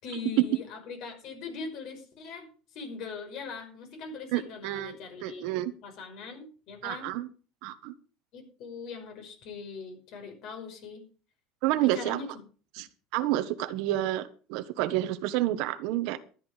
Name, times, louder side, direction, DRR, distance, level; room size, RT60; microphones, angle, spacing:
voice 1, 0.0-5.5 5.8-7.1 8.3-11.0 11.8-12.3, left 4 dB, 55° left, 5 dB, 5.5 m, -41 dB
voice 2, 4.3-5.0 5.2-5.7 6.8-7.3 7.6-7.9 11.6-12.2 12.7-12.9 13.1-16.2, right 14 dB, 70° right, 11 dB, 1.4 m, -29 dB
13.0 x 11.0 x 5.1 m, 0.38 s
cardioid pair, 140°, 0 cm